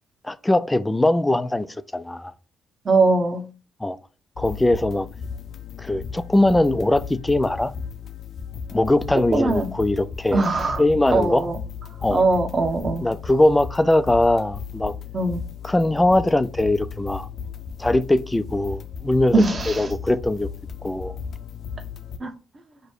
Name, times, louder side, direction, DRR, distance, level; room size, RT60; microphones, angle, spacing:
voice 1, 0.2-1.7 1.9-2.3 3.8-4.0 4.4-5.1 5.8-7.7 8.7-10.4 10.8-11.5 12.0-12.2 13.0-14.9 15.6-17.3 17.8-19.3 19.7-20.5 20.8-21.2, left 1 dB, 10° left, 0.4 m, -21 dB
voice 2, 2.8-3.4 9.3-9.7 10.3-10.8 11.1-11.6 12.1-13.1 15.1-15.4 19.3-19.9 22.2-22.3, right 3 dB, 35° right, 1.0 m, -21 dB
sound 1, 4.4-22.2, left 6 dB, 60° left, 0.6 m, -35 dB
4.9 x 2.2 x 4.6 m
cardioid pair, 90°, 0 cm